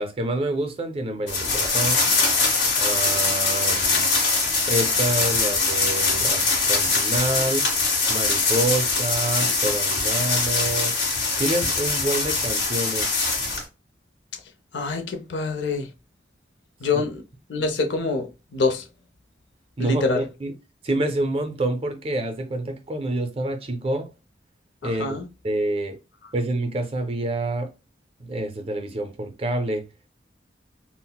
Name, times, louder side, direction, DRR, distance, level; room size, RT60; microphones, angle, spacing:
voice 1, 0.0-2.1 2.8-4.1 4.7-7.7 8.1-11.0 11.4-13.1 16.9-17.1 19.8-20.5 20.8-24.1 24.8-25.2 25.4-26.0 26.3-27.7 28.2-29.9, right 1 dB, 30° right, 0.4 m, -27 dB
sound 1, 1.3-13.6, left 3 dB, 65° left, 1.5 m, -22 dB
voice 2, 14.7-15.9 16.8-17.2 17.5-18.8 19.8-20.2 24.8-25.2, left 3 dB, 80° left, 0.5 m, -25 dB
3.9 x 2.0 x 2.2 m
head